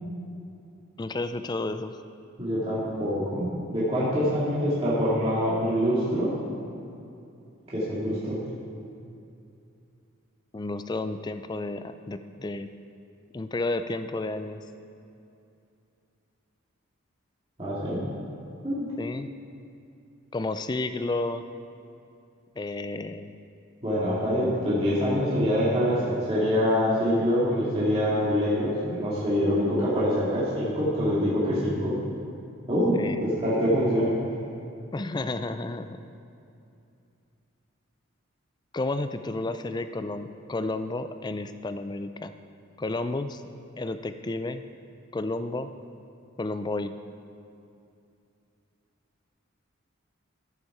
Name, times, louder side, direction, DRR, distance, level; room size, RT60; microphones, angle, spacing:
voice 1, 1.0-2.0 10.5-12.7 13.3-14.6 19.0-19.3 20.3-21.4 22.6-23.3 32.9-33.2 34.9-36.0 38.7-42.3 42.8-43.4 43.8-44.6 45.1-45.7 46.4-46.9, left 2 dB, 20° left, 10 dB, 0.3 m, -31 dB
voice 2, 2.4-6.3 7.7-8.4 17.6-18.0 18.6-18.9 23.8-31.9 32.7-32.9 33.2-34.1, equal, 25° right, -10 dB, 2.0 m, -25 dB
14.0 x 7.1 x 4.8 m, 2.6 s
head